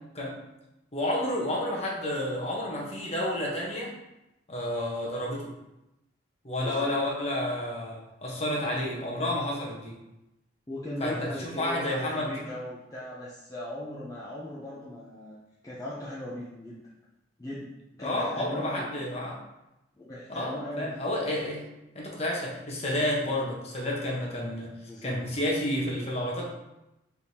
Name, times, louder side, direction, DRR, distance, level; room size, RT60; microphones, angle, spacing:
voice 1, 0.9-3.9 4.5-5.4 6.4-10.0 11.0-12.3 18.0-19.4 20.3-21.6 21.9-24.7 25.0-26.4, left 1 dB, 35° left, -3 dB, 1.0 m, -30 dB
voice 2, 6.6-7.0 10.7-15.4 15.6-16.8 17.4-17.7 18.0-18.9 20.0-20.9 24.9-25.3, left 1 dB, 20° left, -7 dB, 0.6 m, -38 dB
4.6 x 3.5 x 2.8 m, 0.94 s
head